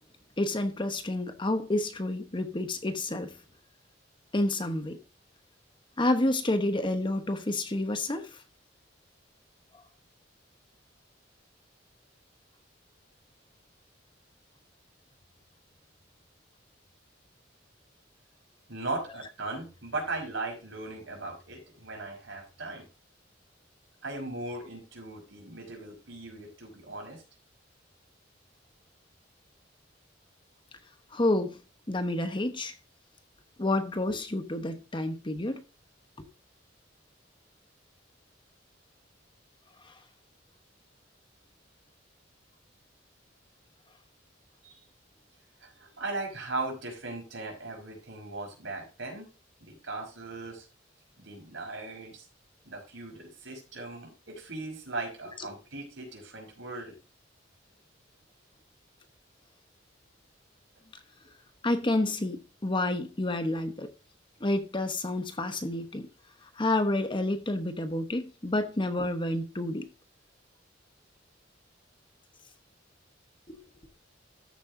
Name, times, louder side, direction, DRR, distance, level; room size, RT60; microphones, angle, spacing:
voice 1, 0.4-3.4 4.3-5.0 6.0-8.4 31.1-31.6 31.9-32.7 33.6-35.6 39.8-39.9 61.6-63.9 64.4-66.1 66.6-69.9 73.5-73.6, left 1 dB, 25° left, 1.0 m, -29 dB
voice 2, 18.7-22.9 24.0-27.2 44.6-44.8 45.6-49.3 49.6-50.7 51.2-52.3 52.7-57.0, right 2 dB, 80° right, 5.4 m, -38 dB
13.5 x 7.8 x 2.7 m
head